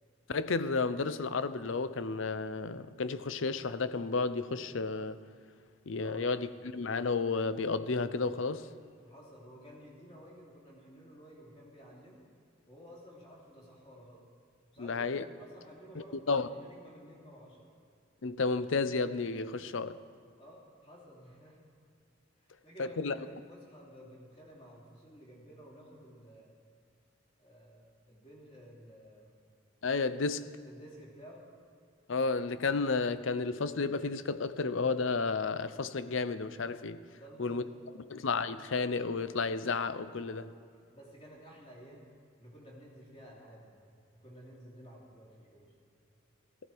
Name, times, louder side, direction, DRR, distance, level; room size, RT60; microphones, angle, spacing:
voice 1, 0.3-5.2 5.9-8.7 14.8-15.2 16.3-16.5 18.2-20.0 22.8-23.1 29.8-30.5 32.1-37.0 37.4-37.6 38.1-40.5, left 4 dB, 75° left, 0.6 m, -32 dB
voice 2, 9.0-12.2 12.7-14.2 14.7-17.7 20.4-21.6 22.4-26.5 27.4-29.3 30.6-31.4 37.1-38.0 40.9-42.1 42.4-43.8 44.2-45.7, equal, 30° left, 3.1 m, -53 dB
15.0 x 14.5 x 4.6 m
head